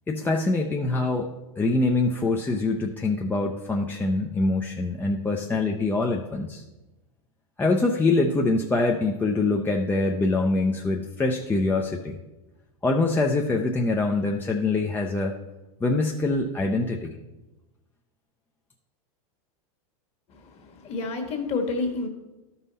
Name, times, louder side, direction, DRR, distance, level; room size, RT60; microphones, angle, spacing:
voice 1, 0.1-6.6 7.6-12.2 12.8-15.3 15.8-17.1, left 3 dB, 10° left, 1 dB, 0.5 m, -24 dB
voice 2, 20.3-22.1, left 3 dB, 35° left, 3 dB, 1.5 m, -29 dB
12.0 x 5.6 x 4.1 m, 1.0 s
supercardioid pair, 125°, 18 cm